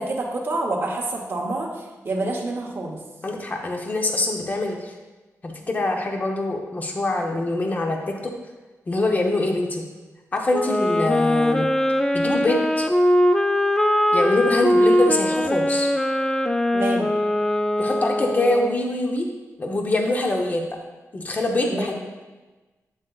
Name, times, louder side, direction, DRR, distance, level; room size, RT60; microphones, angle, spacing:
voice 1, 0.0-1.7 2.0-3.0 16.7-17.1 21.7-21.9, right 2 dB, 40° right, -1 dB, 0.9 m, -27 dB
voice 2, 3.2-4.9 5.4-8.3 8.9-9.8 10.3-11.7 12.1-12.9 14.1-15.9 17.8-19.3 19.6-20.7 21.1-21.9, left 2 dB, 30° left, 1 dB, 0.7 m, -24 dB
Wind instrument woodwind instrument, 10.5-18.8, left 1 dB, 10° left, 0.3 m, -21 dB
7.9 x 7.4 x 2.3 m, 1.2 s
wide cardioid pair, 155°, 6 cm